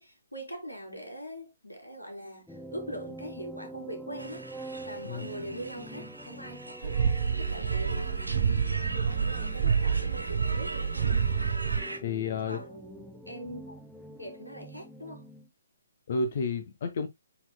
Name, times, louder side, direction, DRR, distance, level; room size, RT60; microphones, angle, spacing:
voice 1, 0.0-4.4 4.8-7.0 7.4-8.2 8.7-11.2 11.7-11.9 12.5-13.8 14.2-15.3, equal, 90° left, 3.5 m, -42 dB
sound 1, 2.5-15.5, right 1 dB, ahead, 0.8 m, -46 dB
sound 2, 4.2-12.0, right 2 dB, 85° right, 2.1 m, -42 dB
sound 3, 6.8-11.8, right 6 dB, 45° right, 0.8 m, -28 dB
voice 2, 12.0-12.6 16.1-17.1, left 4 dB, 45° left, 1.1 m, -31 dB
10.0 x 4.6 x 2.2 m
figure-of-eight pair, 130°, 0 cm